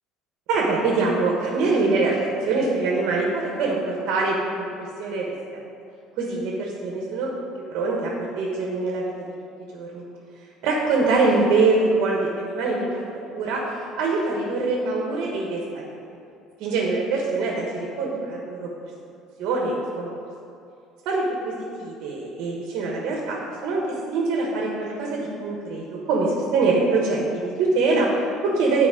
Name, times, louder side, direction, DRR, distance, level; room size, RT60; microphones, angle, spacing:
voice 1, 0.5-4.7 5.0-5.3 6.2-7.3 7.7-9.1 9.7-10.0 10.6-15.9 16.6-18.7 19.4-20.1 21.0-28.9, right 3 dB, 55° right, -2 dB, 1.1 m, -24 dB
10.0 x 4.2 x 5.0 m, 2.5 s
cardioid pair, 175°, 0 cm